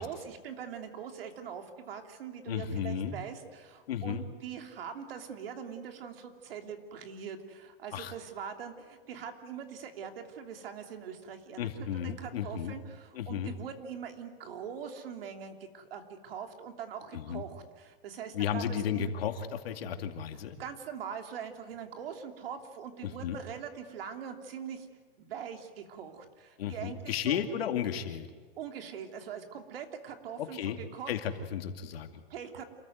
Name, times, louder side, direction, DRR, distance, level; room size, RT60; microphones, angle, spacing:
voice 1, 0.0-19.1 20.6-24.9 25.2-27.4 28.6-31.1 32.3-32.7, right 7 dB, 75° right, 5 dB, 3.1 m, -42 dB
voice 2, 2.5-3.2 3.9-4.3 7.9-8.1 11.6-12.8 13.1-13.5 17.1-17.4 18.3-20.6 23.0-23.4 26.6-28.3 30.4-30.8 31.1-32.2, left 8 dB, 85° left, 5 dB, 2.6 m, -34 dB
27.5 x 14.5 x 9.3 m, 1.4 s
supercardioid pair, 160°, 29 cm